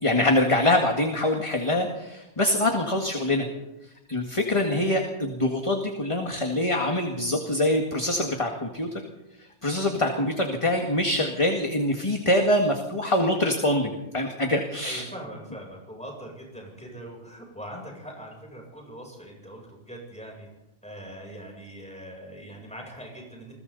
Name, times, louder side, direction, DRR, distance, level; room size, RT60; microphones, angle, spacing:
voice 1, 0.0-3.5 4.1-9.0 9.6-15.0, left 1 dB, 30° left, 3 dB, 2.0 m, -24 dB
voice 2, 14.8-20.5 20.8-23.5, right 1 dB, 5° left, -1 dB, 7.8 m, -41 dB
29.5 x 21.5 x 4.1 m, 0.95 s
omnidirectional pair, 1.1 m